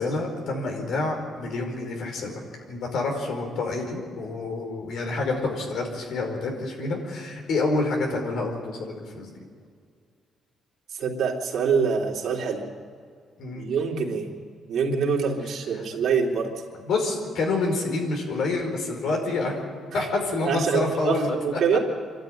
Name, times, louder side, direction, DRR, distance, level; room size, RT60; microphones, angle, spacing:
voice 1, 0.0-2.3 2.7-9.3 13.4-13.7 16.8-19.5 19.9-21.3, left 3 dB, 75° left, 2 dB, 4.9 m, -27 dB
voice 2, 10.9-12.7 13.5-14.3 14.7-16.6 20.4-21.8, right 5 dB, 65° right, -1 dB, 3.3 m, -25 dB
26.0 x 12.5 x 9.3 m, 2.1 s
cardioid pair, 90°, 0 cm